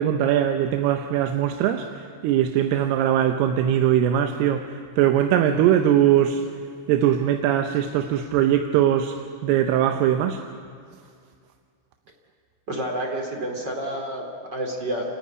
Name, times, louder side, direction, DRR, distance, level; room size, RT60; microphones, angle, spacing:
voice 1, 0.0-6.4 6.9-9.2 9.4-10.4, right 10 dB, 90° right, 6 dB, 2.8 m, -21 dB
voice 2, 12.7-15.1, right 1 dB, 30° right, 1 dB, 2.5 m, -29 dB
29.5 x 10.0 x 9.6 m, 2.2 s
omnidirectional pair, 4.5 m